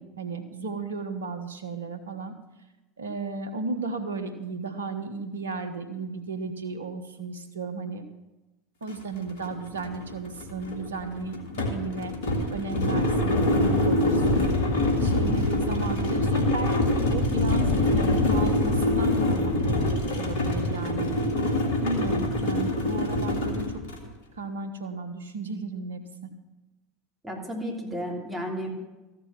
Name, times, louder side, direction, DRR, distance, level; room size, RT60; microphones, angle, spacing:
voice 1, 0.0-2.3 3.0-8.0 8.8-12.1 12.5-21.1 21.8-23.6 24.4-26.3, right 4 dB, 80° right, 8 dB, 1.3 m, -34 dB
sound 1, 8.9-9.0 9.3-24.1, left 1 dB, 70° left, 1.9 m, -25 dB
voice 2, 27.2-28.7, equal, 10° right, -2 dB, 3.3 m, -33 dB
14.5 x 6.7 x 7.6 m, 1.1 s
figure-of-eight pair, 75°, 0 cm